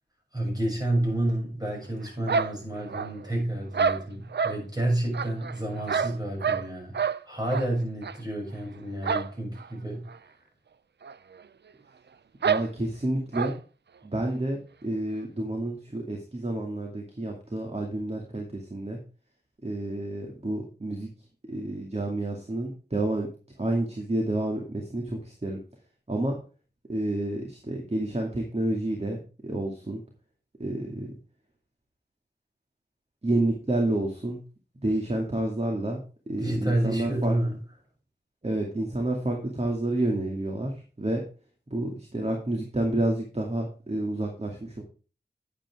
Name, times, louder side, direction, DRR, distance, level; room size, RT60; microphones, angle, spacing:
voice 1, 0.3-7.0 7.2-10.1 36.4-37.5, right 1 dB, 25° right, -1 dB, 6.8 m, -29 dB
sound 1, 2.3-3.3 3.7-4.6 5.1-6.7 6.9-7.2 7.5-7.7 8.0-8.2 9.0-9.3 9.6-9.7 10.1-10.2 11.0-11.1 11.4-11.5 12.4-12.7 13.3-13.6, right 6 dB, 85° right, 0.5 m, -27 dB
voice 2, 12.4-13.6 14.0-19.0 19.6-21.1 21.5-23.3 23.6-25.6 26.1-26.4 26.9-29.2 29.4-30.0 30.6-31.1 33.2-34.4 34.8-37.3 38.4-41.2 41.7-44.8, right 1 dB, 40° right, 1 dB, 2.4 m, -29 dB
10.5 x 9.2 x 3.6 m, 0.35 s
wide cardioid pair, 60°, 17 cm